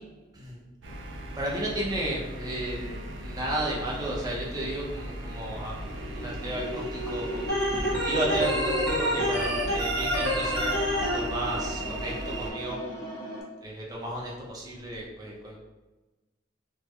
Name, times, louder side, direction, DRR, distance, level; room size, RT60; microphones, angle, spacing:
sound 1, 0.8-12.5, right 2 dB, 70° right, 0.5 m, -37 dB
voice 1, 1.3-3.0 3.2-7.4 8.0-10.7 11.1-12.8 13.6-15.6, right 1 dB, 20° right, -4 dB, 0.7 m, -33 dB
sound 2, 5.8-13.4, equal, 20° left, 0.7 m, -36 dB
Organ, 7.5-11.2, equal, 55° right, 1.0 m, -28 dB
3.3 x 2.1 x 3.2 m, 1.1 s
head